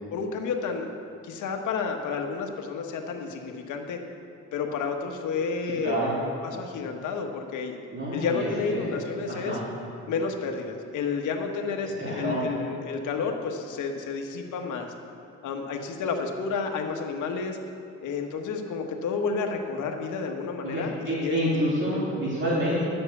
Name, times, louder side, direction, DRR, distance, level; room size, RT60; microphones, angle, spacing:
voice 1, 0.1-1.0 1.2-4.0 4.5-6.0 6.4-7.8 8.1-9.6 10.1-14.9 15.4-17.6 18.0-21.4, left 5 dB, 80° left, 3 dB, 1.4 m, -30 dB
voice 2, 5.8-6.1 7.9-8.9 9.3-9.6 12.0-12.4 20.6-22.8, equal, 40° right, -8 dB, 2.9 m, -28 dB
11.0 x 7.8 x 6.8 m, 2.6 s
cardioid pair, 90°, 30 cm